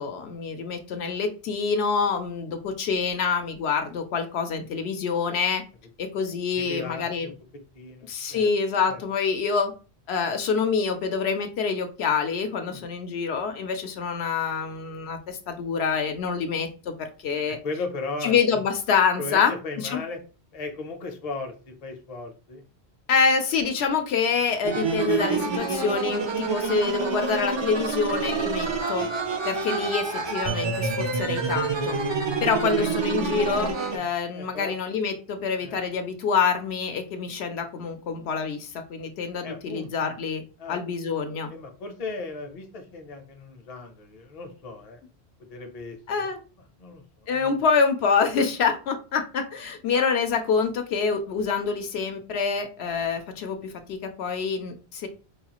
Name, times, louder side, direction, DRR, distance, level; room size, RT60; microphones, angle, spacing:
voice 1, 0.0-5.6 6.0-7.3 8.0-9.7 10.1-17.6 18.2-20.0 23.1-29.1 29.4-32.0 32.4-40.4 40.7-41.5 46.1-46.4 47.3-55.1, left 5 dB, 75° left, 6 dB, 0.8 m, -26 dB
voice 2, 6.5-7.3 7.7-8.5 8.9-9.0 12.6-12.8 17.5-18.6 19.2-20.2 20.5-22.6 32.6-32.9 33.9-34.1 34.3-34.7 35.6-35.8 39.4-39.9 40.6-40.8 41.5-45.0 45.5-46.3 46.8-47.0 47.4-47.6, left 3 dB, 40° left, 4 dB, 0.7 m, -36 dB
sound 1, 24.6-34.0, right 4 dB, 45° right, 0.3 m, -27 dB
4.7 x 2.4 x 2.9 m, 0.34 s
omnidirectional pair, 1.1 m